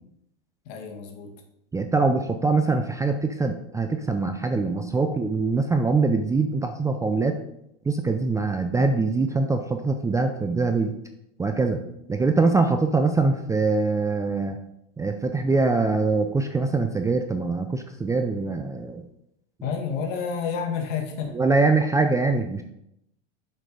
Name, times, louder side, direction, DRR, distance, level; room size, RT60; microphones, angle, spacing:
voice 1, 0.7-1.3 19.6-21.4, left 6 dB, 60° left, 3 dB, 1.9 m, -30 dB
voice 2, 1.7-7.4 7.9-10.9 11.4-11.8 12.1-14.6 15.0-19.1 21.3-22.6, right 3 dB, 10° right, 6 dB, 0.5 m, -23 dB
7.5 x 5.2 x 5.2 m, 0.79 s
hypercardioid pair, 115°, 33 cm